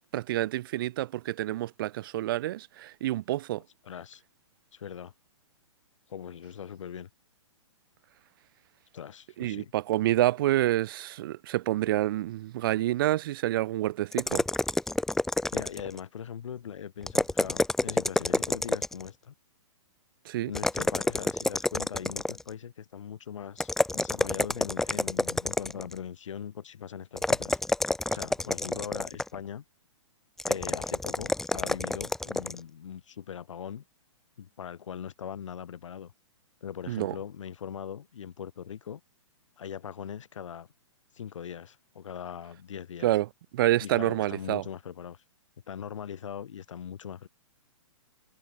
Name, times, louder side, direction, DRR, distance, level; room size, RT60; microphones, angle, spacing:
voice 1, 0.1-3.6 9.4-14.4 20.2-20.5 36.9-37.1 43.0-43.3 43.5-44.6, right 15 dB, 45° right, 1.1 m, -28 dB
voice 2, 3.8-4.2 4.7-5.1 6.1-7.1 8.9-9.7 15.5-19.3 20.5-27.6 28.1-29.6 30.5-33.8 34.4-36.1 36.6-39.0 39.6-40.7 41.1-43.1 43.8-45.2 45.7-47.3, left 8 dB, 70° left, 6.1 m, -40 dB
sound 1, 14.1-16.0 17.0-19.1 20.5-22.5 23.6-25.9 27.2-29.4 30.4-32.6, left 2 dB, ahead, 0.6 m, -28 dB
hypercardioid pair, 155°, 16 cm